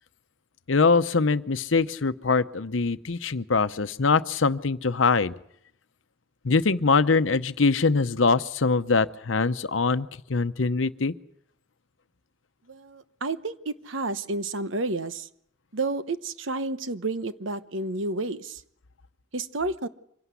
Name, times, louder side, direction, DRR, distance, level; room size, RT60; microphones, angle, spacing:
voice 1, 0.7-5.3 6.4-11.1, left 4 dB, 80° left, 13 dB, 0.8 m, -23 dB
voice 2, 12.7-15.3 15.7-18.6 19.3-19.9, right 2 dB, 85° right, 12 dB, 1.1 m, -30 dB
25.0 x 17.5 x 8.3 m, 0.73 s
head